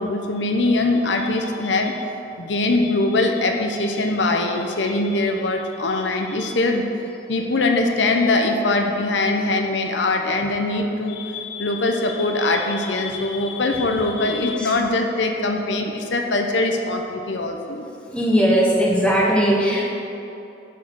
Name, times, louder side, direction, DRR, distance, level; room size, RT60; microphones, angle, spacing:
voice 1, 0.0-2.0 2.4-6.9 7.3-17.9, left 2 dB, 80° left, 3 dB, 0.8 m, -22 dB
voice 2, 18.1-20.0, equal, 5° left, -3 dB, 1.2 m, -18 dB
11.0 x 4.8 x 6.2 m, 2.8 s
head